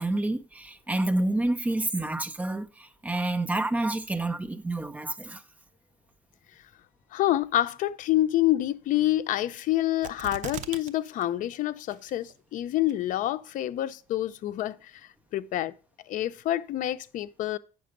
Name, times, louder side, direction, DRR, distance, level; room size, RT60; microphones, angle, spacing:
voice 1, 0.0-5.4, right 2 dB, 10° right, 0.6 m, -28 dB
voice 2, 7.1-15.7 16.1-17.6, left 14 dB, 60° left, 0.6 m, -27 dB
sound 1, 10.0-10.9 11.2-11.3 11.9-12.3 12.9-13.0, right 8 dB, 55° right, 0.8 m, -38 dB
8.8 x 6.0 x 5.1 m
cardioid pair, 140°, 16 cm